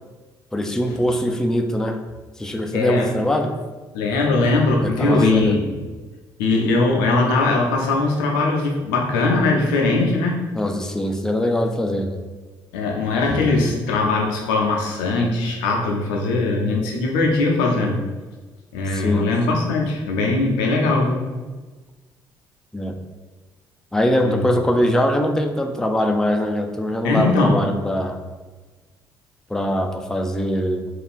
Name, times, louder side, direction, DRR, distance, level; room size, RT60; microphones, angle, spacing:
voice 1, 0.5-2.0 2.4-3.5 4.8-5.6 10.6-12.2 18.9-19.3 22.7-23.0 23.9-28.2 29.5-30.9, left 1 dB, 5° left, 4 dB, 0.4 m, -22 dB
voice 2, 2.7-3.1 3.9-5.6 6.4-10.4 12.7-18.0 18.7-21.3 24.2-24.4 27.0-27.6, left 3 dB, 80° left, 0 dB, 0.5 m, -20 dB
2.5 x 2.3 x 3.5 m, 1.3 s
hypercardioid pair, 50°, 11 cm